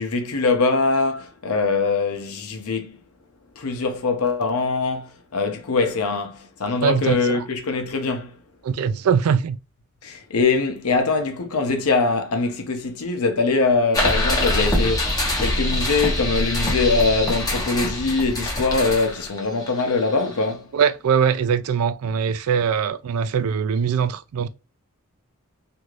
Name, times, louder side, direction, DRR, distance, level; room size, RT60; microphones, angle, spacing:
voice 1, 0.0-3.0 3.6-8.4 10.0-20.7, left 4 dB, 85° left, 0.7 m, -23 dB
voice 2, 6.8-7.4 8.6-9.6 20.7-24.5, right 7 dB, 75° right, 0.4 m, -22 dB
sound 1, 13.9-20.5, left 1 dB, 15° left, 0.9 m, -24 dB
2.7 x 2.4 x 3.1 m
head